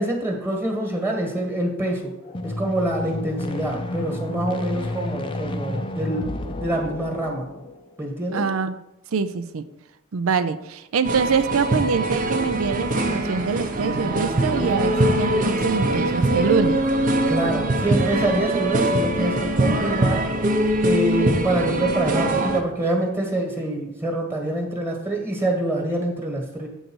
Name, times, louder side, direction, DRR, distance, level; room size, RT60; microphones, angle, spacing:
voice 1, 0.0-2.1 2.4-6.3 6.6-7.5 8.0-8.4 17.3-20.2 20.8-26.7, right 1 dB, 10° right, 0 dB, 1.4 m, -25 dB
sound 1, 2.3-7.9, left 2 dB, 25° left, 0.5 m, -31 dB
voice 2, 8.3-8.8 9.1-9.6 10.1-16.8, right 5 dB, 80° right, 12 dB, 0.5 m, -24 dB
sound 2, 11.0-22.6, right 1 dB, 40° right, 0.8 m, -22 dB
8.1 x 3.9 x 6.2 m, 0.91 s
head